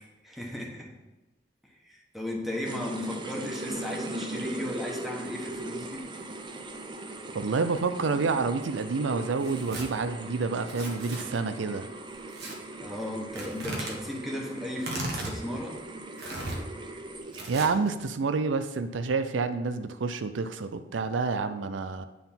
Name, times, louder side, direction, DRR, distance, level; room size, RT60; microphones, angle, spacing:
voice 1, 0.2-0.9 1.6-6.1 12.8-15.8, left 1 dB, ahead, -2 dB, 1.3 m, -36 dB
sound 1, 2.6-17.7, right 2 dB, 25° right, 0.5 m, -39 dB
voice 2, 7.3-11.9 17.5-22.1, right 4 dB, 85° right, 10 dB, 0.5 m, -28 dB
Tearing, 9.4-9.9 10.7-11.2 12.3-12.5 13.4-13.9 14.8-15.4 16.2-16.6 17.3-17.9, right 1 dB, 60° right, 1.4 m, -36 dB
9.3 x 3.8 x 5.7 m, 1.1 s
head